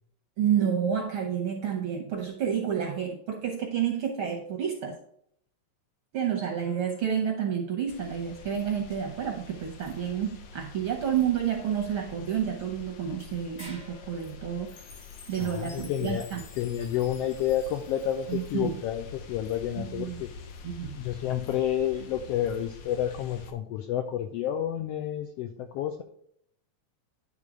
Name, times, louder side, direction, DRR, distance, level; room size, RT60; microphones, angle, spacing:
voice 1, 0.4-5.0 6.1-14.7 15.3-16.4 18.3-18.8 19.8-20.2 20.6-21.0, right 8 dB, 70° right, 1 dB, 1.2 m, -29 dB
sound 1, 6.6-7.9 12.5-12.6 12.9-13.0 13.6-14.5, left 1 dB, 20° left, 0.9 m, -50 dB
sound 2, 7.9-23.5, left 5 dB, 70° left, 1.9 m, -46 dB
Chime, 14.7-18.9, left 4 dB, 50° left, 1.7 m, -52 dB
voice 2, 15.4-16.3 16.6-20.3 20.9-26.0, left 10 dB, 85° left, 6 dB, 1.4 m, -30 dB
10.5 x 3.6 x 4.9 m, 0.69 s
omnidirectional pair, 3.3 m